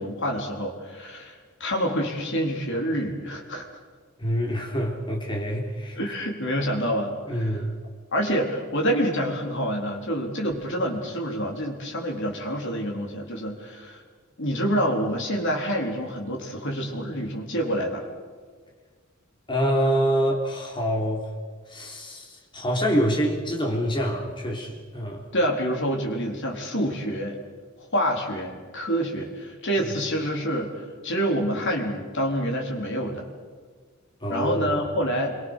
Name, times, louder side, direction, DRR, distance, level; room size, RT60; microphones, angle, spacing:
voice 1, 0.0-3.7 6.0-7.6 8.1-14.0 14.4-18.1 25.3-27.4 27.8-33.3 34.3-35.4, equal, 60° left, 1 dB, 4.2 m, -27 dB
voice 2, 4.2-6.0 7.3-7.7 19.5-21.3 21.7-25.3 34.2-34.8, equal, 25° left, 0 dB, 3.8 m, -26 dB
27.0 x 23.5 x 6.6 m, 1.5 s
head